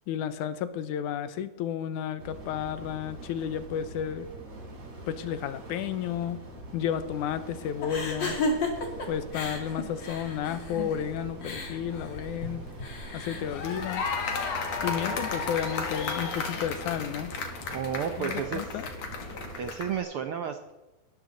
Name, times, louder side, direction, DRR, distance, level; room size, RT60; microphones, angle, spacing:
voice 1, 0.1-4.3 5.1-6.4 6.7-8.4 9.1-12.6 13.1-14.1 14.8-17.3 18.2-18.9, left 9 dB, 80° left, 12 dB, 2.3 m, -32 dB
sound 1, 2.2-19.6, right 2 dB, 60° right, 5.8 m, -44 dB
sound 2, 7.8-14.6, left 2 dB, 40° left, 2.7 m, -34 dB
sound 3, 13.3-20.0, left 4 dB, 60° left, 3.0 m, -34 dB
voice 2, 17.7-18.7 19.6-20.7, right 7 dB, 75° right, 6 dB, 1.3 m, -32 dB
19.5 x 13.0 x 4.0 m, 1.1 s
omnidirectional pair, 3.6 m